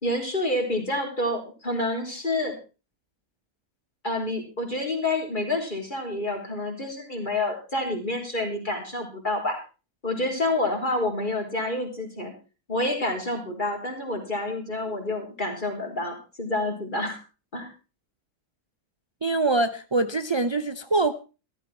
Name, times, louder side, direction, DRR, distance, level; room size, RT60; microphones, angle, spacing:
voice 1, 0.0-2.5 4.0-9.6 10.0-12.3 12.7-17.2 17.5-17.7, left 2 dB, 30° left, 4.0 m, -28 dB
voice 2, 19.2-21.1, right 3 dB, 50° right, 0.3 m, -24 dB
15.0 x 13.0 x 4.4 m
omnidirectional pair, 1.6 m